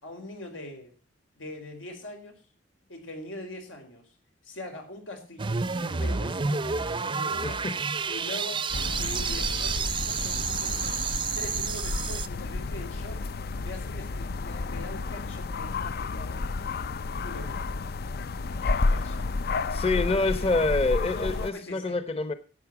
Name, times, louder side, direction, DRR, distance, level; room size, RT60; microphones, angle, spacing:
voice 1, 0.0-0.9 1.4-2.5 2.9-4.1 4.4-7.7 8.1-8.7 9.0-11.0 11.3-13.3 13.6-16.5 17.2-17.7 18.9-19.3 19.9-20.6 21.1-22.0, left 1 dB, 90° left, 4 dB, 4.4 m, -42 dB
sound 1, 5.4-12.3, right 5 dB, 25° right, 0.5 m, -30 dB
voice 2, 7.4-7.8 18.6-18.8 19.7-22.3, left 3 dB, 30° left, 12 dB, 0.9 m, -27 dB
sound 2, 8.7-21.5, left 3 dB, 55° left, 0.5 m, -31 dB
12.0 x 8.8 x 6.0 m, 0.35 s
head